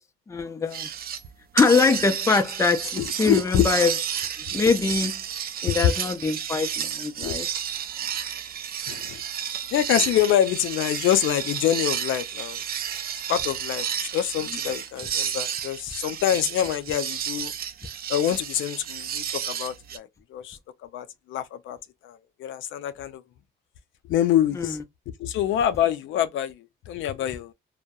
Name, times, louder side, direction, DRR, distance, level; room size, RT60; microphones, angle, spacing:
voice 1, 0.3-0.9 1.5-3.9 4.5-5.2 5.6-7.5 24.6-24.7, left 4 dB, 15° left, 0.4 m, -23 dB
sound 1, 0.7-1.3 1.6-20.0, right 9 dB, 50° right, 0.4 m, -31 dB
voice 2, 3.0-3.7 5.7-5.8 7.2-7.4 8.9-12.6 13.3-17.5 18.1-20.6 20.9-21.8 22.0-23.2 24.1-24.8 25.2-27.5, left 11 dB, 75° left, 0.4 m, -26 dB
2.2 x 2.1 x 2.6 m
cardioid pair, 90°, 20 cm